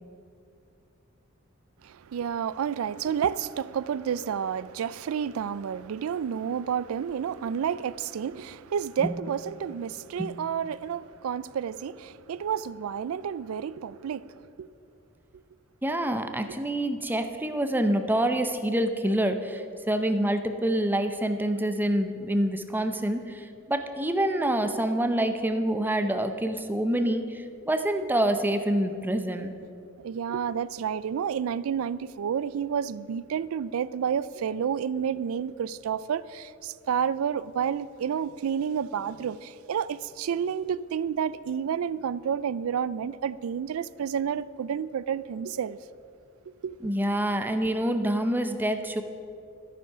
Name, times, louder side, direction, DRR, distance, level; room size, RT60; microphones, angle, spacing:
voice 1, 1.8-14.7 30.0-45.8 46.6-46.8, right 8 dB, 75° right, 0.3 m, -30 dB
voice 2, 15.8-29.5 46.8-49.0, right 1 dB, 10° right, 0.6 m, -26 dB
10.5 x 9.4 x 5.6 m
head